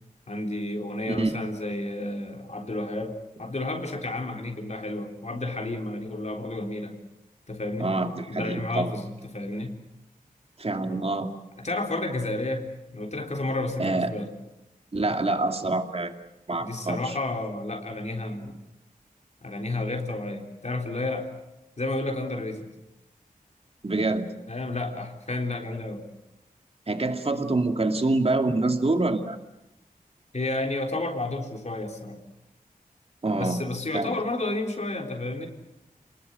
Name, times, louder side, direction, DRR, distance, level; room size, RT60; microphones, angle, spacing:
voice 1, 0.3-6.9 7.5-7.9 8.3-9.8 11.6-14.3 16.6-18.5 19.4-21.3 21.8-22.7 24.5-26.0 30.3-32.2 33.4-35.5, left 2 dB, 50° left, 2 dB, 3.8 m, -31 dB
voice 2, 7.8-8.9 10.6-11.3 13.8-14.1 14.9-16.1 16.5-17.2 23.8-24.3 26.9-29.4 33.2-33.6 33.9-34.2, right 2 dB, 40° right, 6 dB, 2.4 m, -26 dB
29.5 x 20.5 x 8.0 m, 0.92 s
wide cardioid pair, 85°, 15 cm